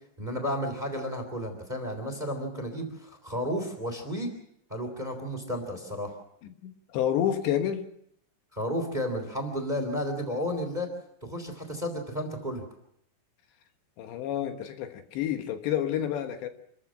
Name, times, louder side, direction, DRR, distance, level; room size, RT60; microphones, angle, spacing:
voice 1, 0.2-4.3 4.7-6.1 8.5-10.9 11.2-12.6, equal, 10° right, 2.8 m, -32 dB
voice 2, 6.6-7.9 14.0-16.5, left 10 dB, 75° left, 3.4 m, -29 dB
27.0 x 14.5 x 7.5 m
omnidirectional pair, 5.2 m